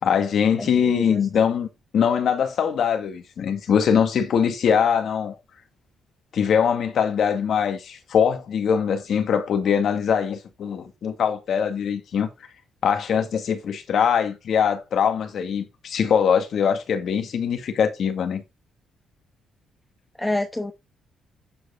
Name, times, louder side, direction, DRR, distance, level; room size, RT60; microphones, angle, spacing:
voice 1, 0.0-1.7 1.9-5.3 6.3-12.3 12.8-18.4, left 7 dB, 65° left, 1.8 m, -22 dB
voice 2, 0.6-1.2 20.2-20.7, left 1 dB, 10° left, 1.0 m, -27 dB
9.2 x 4.9 x 3.8 m
cardioid pair, 90°, 0 cm